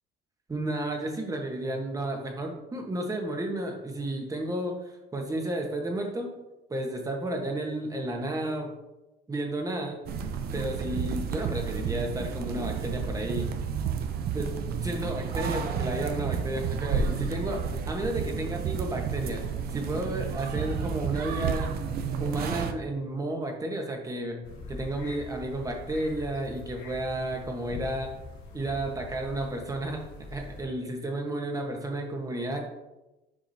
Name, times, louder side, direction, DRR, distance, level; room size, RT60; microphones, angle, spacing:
voice 1, 0.5-6.3 6.7-8.7 9.3-10.0 10.5-13.5 14.3-14.5 14.8-19.4 19.7-21.7 22.2-24.4 24.7-28.1 28.5-30.0 30.3-32.6, right 1 dB, 20° right, 2 dB, 1.2 m, -32 dB
sound 1, 10.1-22.7, right 6 dB, 65° right, 0.6 m, -31 dB
sound 2, 24.4-30.6, left 2 dB, 80° left, 1.5 m, -43 dB
7.2 x 4.9 x 2.7 m, 0.98 s
cardioid pair, 110°, 17 cm